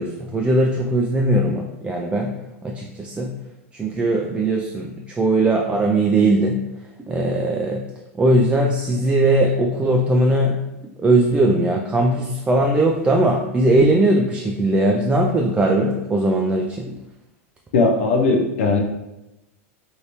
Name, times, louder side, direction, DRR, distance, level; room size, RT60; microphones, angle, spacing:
voice 1, 0.0-2.4 2.6-3.3 3.7-6.6 7.0-7.8 8.1-17.0, right 1 dB, 15° right, -1 dB, 0.3 m, -19 dB
voice 2, 17.7-18.8, left 3 dB, 75° left, 3 dB, 0.5 m, -18 dB
3.2 x 2.6 x 2.8 m, 0.96 s
hypercardioid pair, 100°, 7 cm